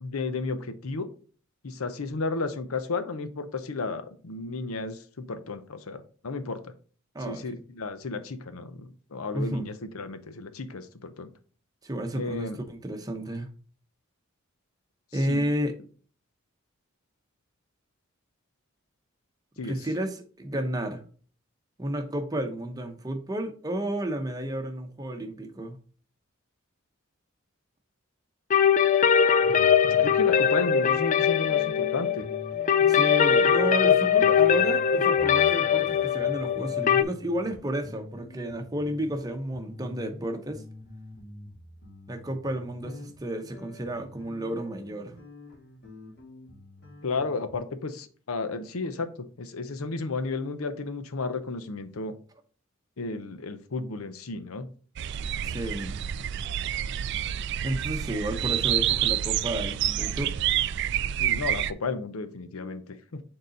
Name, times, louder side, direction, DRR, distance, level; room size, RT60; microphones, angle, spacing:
voice 1, 0.0-1.1 1.6-6.7 7.3-11.3 12.1-12.6 15.3-15.4 19.6-19.8 29.5-32.3 47.0-49.1 49.4-52.1 53.0-54.7 61.2-63.2, left 3 dB, 85° left, 0.8 m, -33 dB
voice 2, 7.1-7.5 9.3-9.7 11.8-13.5 15.1-15.7 19.6-21.0 21.8-25.8 32.8-40.6 42.1-45.2 55.4-56.0 57.6-60.3, right 1 dB, 15° right, 0.8 m, -32 dB
sound 1, 28.5-37.0, left 8 dB, 35° left, 0.3 m, -21 dB
sound 2, 29.4-29.6 29.8-40.2 40.5-47.6, left 1 dB, 50° left, 2.8 m, -47 dB
sound 3, 55.0-61.7, right 10 dB, 55° right, 0.3 m, -28 dB
6.6 x 3.9 x 3.9 m
head